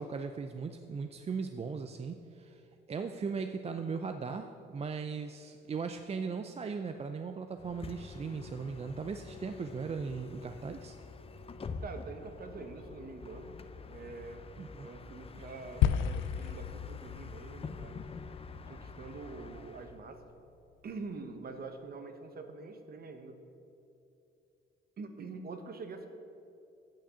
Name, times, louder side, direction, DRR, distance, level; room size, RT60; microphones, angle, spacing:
voice 1, 0.0-11.0 14.6-14.9 15.4-15.5, right 5 dB, 30° right, 7 dB, 0.5 m, -38 dB
Bus, 7.6-20.0, left 4 dB, 30° left, 0.6 m, -47 dB
voice 2, 11.8-13.6 13.9-14.4 14.8-18.0 18.7-20.2 20.8-23.4 25.0-26.1, right 3 dB, 50° right, 7 dB, 1.1 m, -45 dB
sound 1, 15.8-20.2, left 9 dB, 80° left, 0.4 m, -34 dB
8.7 x 5.9 x 8.0 m, 2.7 s
cardioid pair, 90°, 20 cm